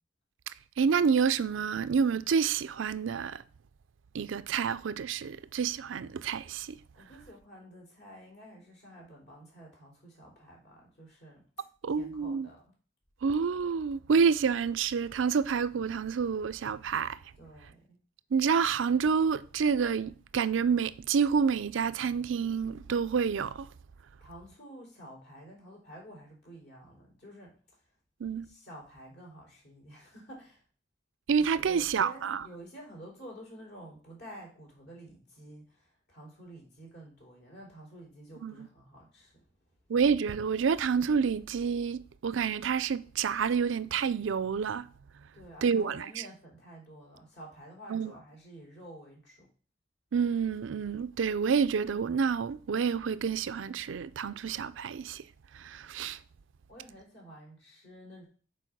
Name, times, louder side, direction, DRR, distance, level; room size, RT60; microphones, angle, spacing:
voice 1, 0.8-3.4 4.1-6.8 11.8-12.5 13.2-17.2 18.3-23.7 28.2-28.5 31.3-32.5 38.4-38.7 39.9-44.9 45.6-46.3 47.9-48.1 50.1-55.2 55.6-56.2, right 6 dB, 75° right, 0.4 m, -28 dB
voice 2, 7.0-11.4 11.9-12.6 17.4-18.0 24.2-27.5 28.5-30.6 31.6-35.7 36.1-39.3 45.3-49.5 56.7-58.3, right 1 dB, 60° left, 3.9 m, -50 dB
7.0 x 4.7 x 5.9 m
head